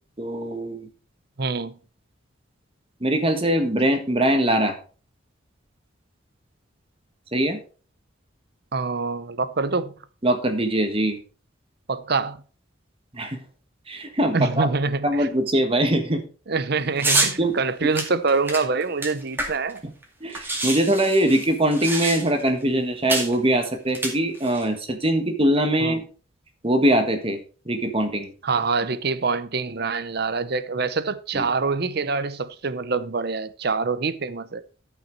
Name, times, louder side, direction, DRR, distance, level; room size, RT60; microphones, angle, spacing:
voice 1, 0.2-0.9 3.0-4.8 7.3-7.6 10.2-11.2 13.1-13.4 13.9-14.7 15.0-16.2 17.4-17.5 19.8-19.9 20.2-26.0 26.6-27.4 27.7-28.3 31.3-31.5, right 1 dB, 30° right, 1.4 m, -22 dB
voice 2, 1.4-1.8 8.7-9.9 11.9-12.4 14.3-15.3 16.5-19.8 25.8-26.0 28.4-34.6, right 4 dB, 55° right, 0.7 m, -25 dB
sound 1, 17.0-17.3 17.9-19.8 20.0-20.1 20.3-22.5 23.1-23.3 23.9-24.6, right 2 dB, 10° right, 2.2 m, -26 dB
13.5 x 5.7 x 4.5 m
head